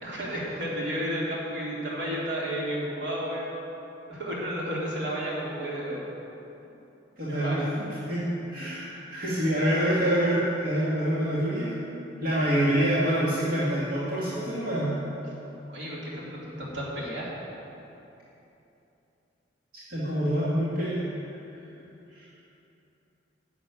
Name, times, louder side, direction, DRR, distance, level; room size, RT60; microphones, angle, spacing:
voice 1, 0.0-3.5 4.1-6.0 7.3-7.7 15.7-17.4, equal, 70° right, -6 dB, 3.5 m, -32 dB
voice 2, 7.2-7.7 8.1-11.8 12.2-15.0 19.7-21.0 22.1-22.3, right 1 dB, 55° right, -9 dB, 2.4 m, -26 dB
12.0 x 7.2 x 9.1 m, 2.9 s
head